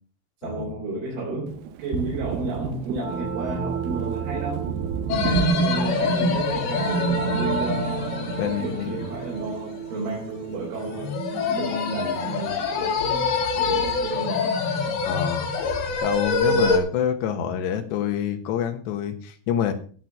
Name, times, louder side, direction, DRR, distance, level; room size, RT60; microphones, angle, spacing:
voice 1, 0.4-4.7 5.2-11.2 11.5-14.4 16.4-16.7, right 2 dB, 65° right, -3 dB, 5.7 m, -32 dB
Thunder, 1.5-11.2 11.5-12.7, right 9 dB, 85° right, 3.1 m, -35 dB
sound 1, 3.0-13.4, right 6 dB, 45° right, 4.7 m, -33 dB
voice 2, 5.1-5.4 8.4-8.9 15.0-15.5 16.0-19.7, left 8 dB, 80° left, 6 dB, 3.6 m, -27 dB
sound 2, 5.1-9.5 10.8-16.8, left 3 dB, 65° left, 4.1 m, -25 dB
16.0 x 6.2 x 6.8 m, 0.43 s
omnidirectional pair, 5.0 m